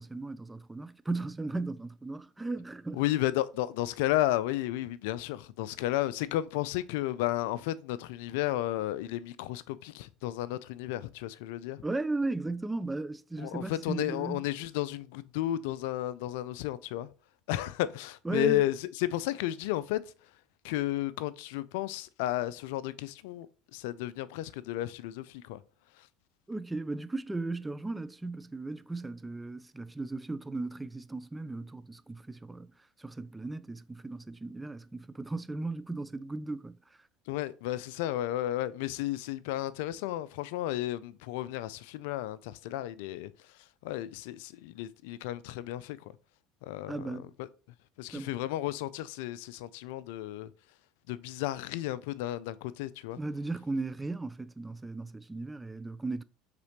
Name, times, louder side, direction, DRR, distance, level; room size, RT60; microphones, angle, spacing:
voice 1, 0.0-3.0 11.8-14.4 18.2-18.7 26.5-32.7 33.0-36.8 46.9-47.3 48.1-48.4 53.2-56.2, right 2 dB, 15° right, 0.3 m, -36 dB
voice 2, 2.9-11.8 13.4-17.1 17.5-20.0 20.6-23.5 23.7-25.6 26.0-26.1 37.3-46.1 46.6-47.5 48.0-50.5 51.1-53.2, left 14 dB, 80° left, 0.3 m, -33 dB
4.9 x 3.6 x 2.9 m
hypercardioid pair, 80°, 0 cm